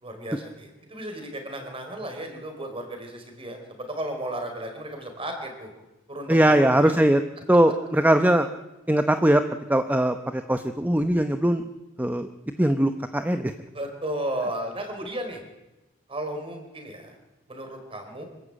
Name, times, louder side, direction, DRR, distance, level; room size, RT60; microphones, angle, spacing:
voice 1, 0.0-5.7 6.1-7.0 13.7-15.4 16.1-17.2 17.5-18.3, right 1 dB, 30° right, 4 dB, 4.6 m, -34 dB
voice 2, 6.3-7.2 7.5-8.5 8.9-9.4 9.7-11.6 12.0-12.3 12.6-13.5, right 1 dB, 10° right, 8 dB, 0.8 m, -20 dB
25.5 x 15.0 x 8.9 m, 1.0 s
head